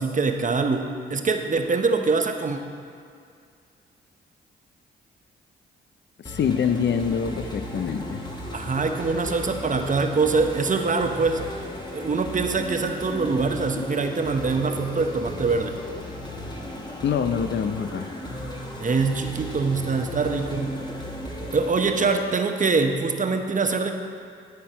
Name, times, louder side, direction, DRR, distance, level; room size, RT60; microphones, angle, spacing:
voice 1, 0.0-2.6 8.5-11.4 11.9-15.8 18.8-20.8 21.5-23.9, right 4 dB, 40° right, 5 dB, 0.9 m, -24 dB
voice 2, 6.2-8.2 13.8-13.9 17.0-18.1, left 7 dB, 55° left, 8 dB, 0.6 m, -25 dB
sound 1, 6.2-22.2, equal, 20° left, 1.5 m, -36 dB
12.5 x 4.4 x 5.6 m, 2.3 s
supercardioid pair, 55°, 21 cm